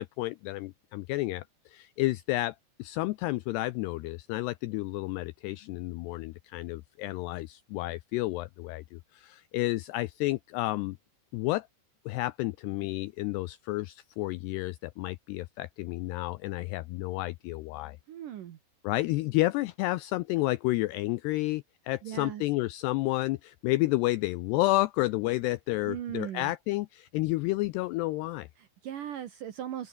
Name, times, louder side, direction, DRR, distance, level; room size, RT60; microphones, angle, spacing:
voice 1, 0.0-11.0 11.3-11.7 12.1-18.0 18.8-28.5, left 19 dB, 85° left, 2.4 m, -31 dB
voice 2, 18.1-18.6 22.0-22.4 25.9-26.5 28.6-29.9, right 11 dB, 65° right, 2.2 m, -38 dB
open air
omnidirectional pair, 5.4 m